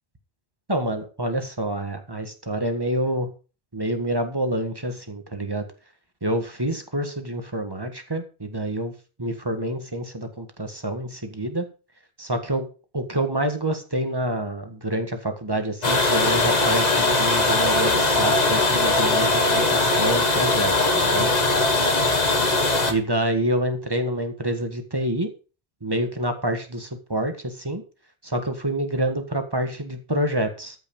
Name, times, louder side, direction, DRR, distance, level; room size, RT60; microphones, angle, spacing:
voice 1, 0.7-3.3 3.7-5.6 6.2-8.9 9.2-11.7 12.2-12.7 12.9-21.3 22.9-25.3 25.8-27.8 28.2-30.7, right 1 dB, 20° right, 6 dB, 1.7 m, -27 dB
sound 1, 15.8-22.9, left 2 dB, 40° left, 1.6 m, -20 dB
13.5 x 6.0 x 5.5 m, 0.34 s
omnidirectional pair, 1.1 m